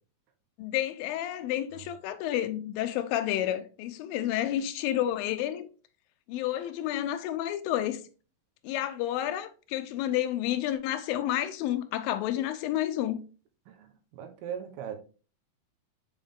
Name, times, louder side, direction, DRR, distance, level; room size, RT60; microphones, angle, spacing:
voice 1, 0.6-5.7 6.3-8.0 8.6-13.2, left 12 dB, 90° left, 2.4 m, -30 dB
voice 2, 13.7-15.0, right 8 dB, 80° right, 2.7 m, -39 dB
7.4 x 3.5 x 3.6 m
omnidirectional pair, 4.0 m